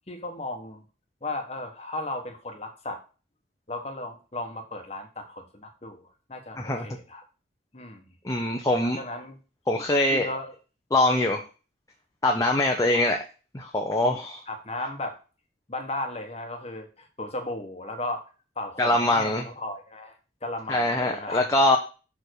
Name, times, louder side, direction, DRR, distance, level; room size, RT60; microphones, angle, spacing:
voice 1, 0.1-0.8 1.2-3.0 3.7-7.2 7.7-8.0 8.8-9.4 10.1-10.5 12.9-13.0 14.5-15.2 15.7-18.3 18.6-21.5, left 2 dB, 35° left, 4 dB, 1.2 m, -35 dB
voice 2, 6.6-6.9 8.2-9.0 9.7-10.3 10.9-11.4 12.2-13.2 13.5-14.4 18.8-19.4 20.7-21.8, left 1 dB, 20° left, 2 dB, 0.7 m, -23 dB
6.8 x 3.6 x 6.3 m, 0.33 s
head